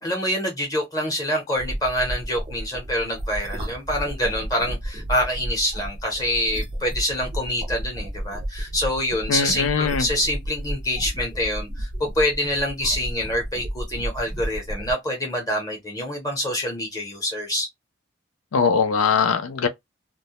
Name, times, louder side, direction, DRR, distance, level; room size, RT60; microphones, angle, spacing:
voice 1, 0.0-17.7, left 1 dB, 15° left, 0.7 m, -26 dB
sound 1, 1.6-14.9, right 1 dB, 20° right, 0.4 m, -32 dB
voice 2, 9.3-10.1 18.5-19.7, left 5 dB, 85° left, 0.4 m, -21 dB
2.2 x 2.0 x 2.7 m
head